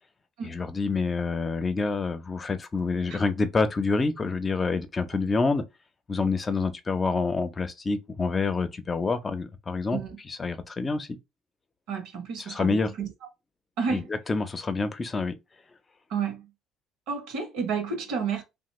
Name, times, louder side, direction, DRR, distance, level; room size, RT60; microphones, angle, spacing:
voice 1, 0.4-5.6 6.1-10.0 10.3-11.1 12.5-12.9 13.9-15.3, left 4 dB, 30° left, 0.6 m, -27 dB
voice 2, 11.9-13.1 13.8-14.1 16.1-16.5 17.1-18.4, right 6 dB, 75° right, 1.0 m, -31 dB
2.8 x 2.2 x 3.1 m
supercardioid pair, 70°, 0 cm